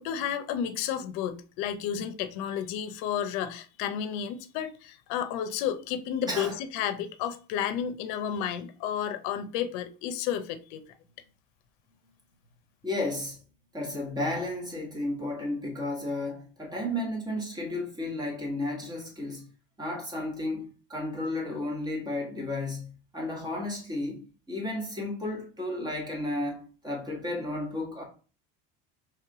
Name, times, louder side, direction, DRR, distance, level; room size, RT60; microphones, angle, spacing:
voice 1, 0.0-10.8, left 9 dB, 70° left, 0.7 m, -32 dB
voice 2, 12.8-13.4 13.7-19.5 19.8-28.0, left 1 dB, 15° right, 1.3 m, -33 dB
3.2 x 3.2 x 4.7 m
cardioid pair, 150°, 32 cm